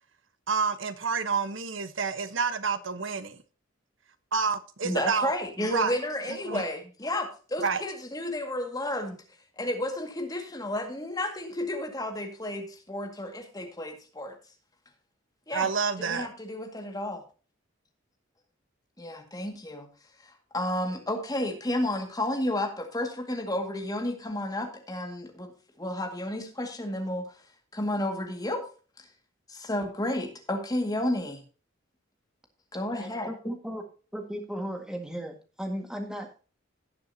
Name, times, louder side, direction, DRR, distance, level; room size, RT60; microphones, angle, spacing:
voice 1, 0.5-3.4 4.3-5.3 5.6-5.9 6.3-6.6 7.6-7.8 15.5-16.3, right 5 dB, 75° right, 1.1 m, -29 dB
voice 2, 4.8-9.2 9.6-14.4 15.5-15.7 16.0-17.2 19.0-19.9 20.2-25.5 25.8-27.3 27.7-28.7 29.0-29.1 29.5-31.4 32.7-33.3, left 1 dB, 20° left, 2.0 m, -32 dB
voice 3, 33.0-33.8 34.1-36.4, equal, 5° right, 1.8 m, -36 dB
17.5 x 7.0 x 2.8 m
head